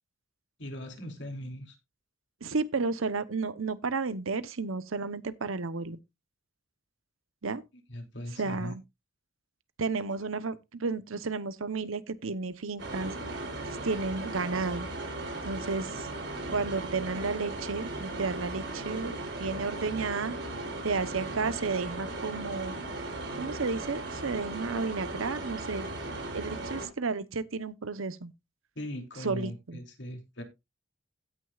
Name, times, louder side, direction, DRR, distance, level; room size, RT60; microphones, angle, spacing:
voice 1, 0.6-1.8 7.9-8.7 28.7-30.4, left 1 dB, 60° left, 3.0 m, -39 dB
voice 2, 2.4-6.0 7.4-7.6 8.4-8.8 9.8-13.1 13.8-14.9 15.4-16.1 16.5-20.4 20.8-22.7 23.4-25.9 26.3-28.3 29.2-29.8, right 4 dB, 85° right, 0.9 m, -32 dB
sound 1, 12.8-26.9, right 2 dB, 60° right, 5.3 m, -37 dB
16.5 x 6.4 x 2.4 m
head